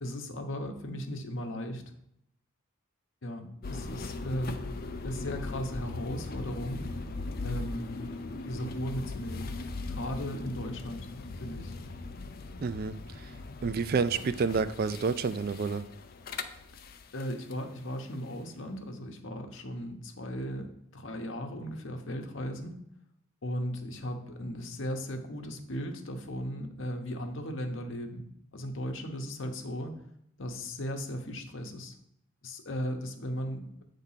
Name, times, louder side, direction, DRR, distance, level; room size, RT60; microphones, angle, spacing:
voice 1, 0.0-1.9 3.2-4.6 5.0-6.8 7.4-8.1 8.4-9.5 9.9-11.1 11.4-11.7 17.1-22.7 23.4-28.2 28.5-30.0 30.4-31.9 32.4-33.8, equal, 65° left, 4 dB, 1.0 m, -36 dB
sound 1, 3.6-17.6, left 3 dB, 45° left, 0.5 m, -39 dB
voice 2, 12.6-13.3 13.6-15.8, right 5 dB, 45° right, 13 dB, 0.3 m, -29 dB
8.3 x 3.6 x 5.7 m, 0.75 s
head